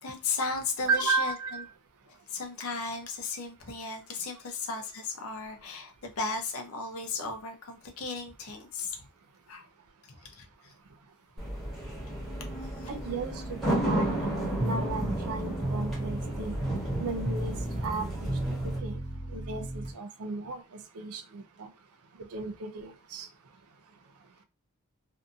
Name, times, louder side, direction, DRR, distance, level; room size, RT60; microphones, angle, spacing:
voice 1, 0.0-1.6 2.1-9.1 9.5-9.6 10.1-10.7 12.6-12.9, left 4 dB, 75° left, 0.6 m, -36 dB
voice 2, 0.9-1.6 12.9-13.6 13.8-16.5 17.0-17.5 17.8-18.3 18.8-19.0 19.3-20.6 20.9-21.7 22.3-23.3, right 4 dB, 80° right, 0.5 m, -34 dB
sound 1, 11.4-18.8, right 1 dB, ahead, 1.0 m, -33 dB
sound 2, 14.6-19.9, right 1 dB, 25° right, 0.6 m, -34 dB
2.7 x 2.5 x 2.3 m
head